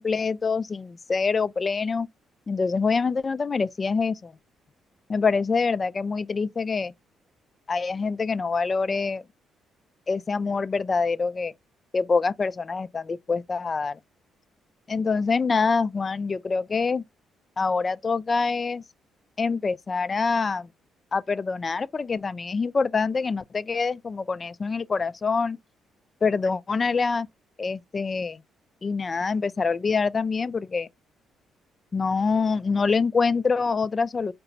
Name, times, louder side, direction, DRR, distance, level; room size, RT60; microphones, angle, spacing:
voice 1, 0.0-2.1 2.5-4.3 5.1-6.9 7.7-9.2 10.1-11.5 11.9-14.0 14.9-17.0 17.6-18.8 19.4-20.7 21.1-25.6 26.2-27.3 27.6-28.4 28.8-30.9 31.9-34.3, left 4 dB, 35° left, 0.3 m, -25 dB
4.8 x 2.2 x 3.8 m
cardioid pair, 90°, 0 cm